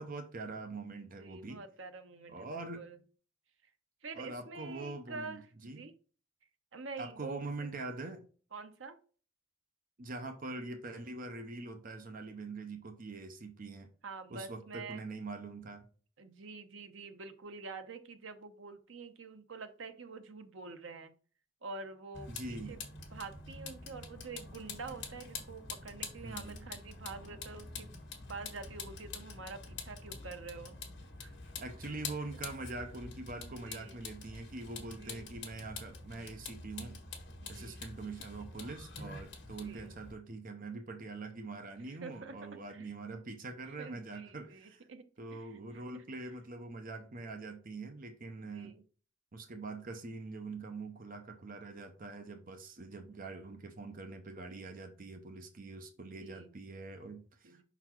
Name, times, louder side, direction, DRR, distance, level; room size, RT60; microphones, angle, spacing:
voice 1, 0.0-1.6 2.3-2.8 4.1-5.4 5.6-5.8 7.0-8.3 10.0-13.9 14.3-15.9 22.3-22.8 26.2-26.7 31.6-37.0 37.5-44.9 45.2-48.7 49.3-57.6, right 3 dB, 45° right, 0.7 m, -44 dB
voice 2, 1.0-3.0 4.0-5.9 6.7-7.4 8.5-9.0 14.0-15.0 16.2-21.1 21.6-22.8 23.1-27.9 28.3-30.8 31.2-31.5 33.4-34.0 34.8-35.3 37.4-37.8 39.6-39.9 41.8-42.4 42.7-42.9 43.8-45.0 45.3-46.3 48.4-48.8 56.0-56.5 57.4-57.6, right 4 dB, 70° right, 0.8 m, -47 dB
Vehicle, 22.1-40.1, left 4 dB, 60° left, 1.4 m, -46 dB
5.5 x 4.0 x 4.4 m
head